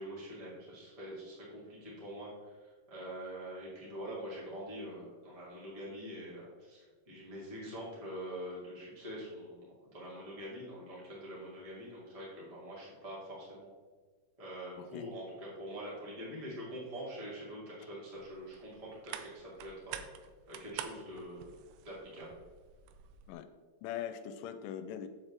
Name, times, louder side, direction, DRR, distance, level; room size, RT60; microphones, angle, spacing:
voice 1, 0.0-13.7 14.4-20.0 20.5-21.5 21.8-22.4, equal, 30° right, -7 dB, 0.6 m, -45 dB
sound 1, 18.2-23.3, right 10 dB, 90° right, 3.1 m, -48 dB
voice 2, 23.8-25.1, left 9 dB, 90° left, 9 dB, 3.0 m, -41 dB
7.6 x 7.3 x 3.3 m, 1.5 s
omnidirectional pair, 5.5 m